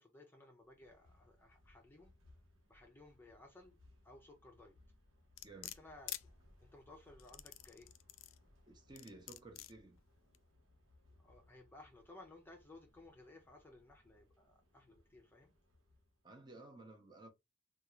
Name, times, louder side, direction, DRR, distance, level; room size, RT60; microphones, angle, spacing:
voice 1, 0.0-2.1 2.7-3.8 4.0-4.8 5.6-6.1 6.6-7.9 11.2-15.5, left 2 dB, 10° left, 0.6 m, -59 dB
sound 1, 0.6-16.3, left 1 dB, 85° right, 1.0 m, -68 dB
sound 2, 5.4-6.2 7.2-8.4 9.0-9.7 10.3-10.4, left 16 dB, 75° left, 0.3 m, -47 dB
voice 2, 5.4-5.7 8.7-10.0 16.2-17.3, right 2 dB, 20° right, 0.8 m, -55 dB
3.6 x 2.4 x 3.0 m
head